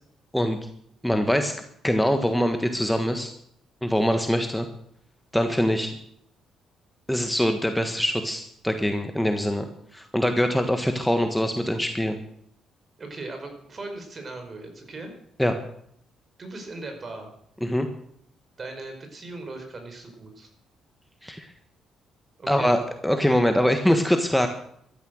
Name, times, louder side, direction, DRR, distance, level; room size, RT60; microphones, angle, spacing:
voice 1, 1.0-1.6 1.8-3.3 3.8-4.7 5.3-5.9 7.1-9.7 9.9-12.2 15.4-15.6 17.6-17.9 21.2-21.5 22.5-24.5, equal, 5° left, 6 dB, 1.4 m, -23 dB
voice 2, 13.0-15.1 16.4-17.3 18.6-20.5 22.4-22.8, right 2 dB, 35° right, 5 dB, 5.2 m, -38 dB
15.0 x 13.0 x 6.4 m, 0.69 s
cardioid pair, 90°, 0 cm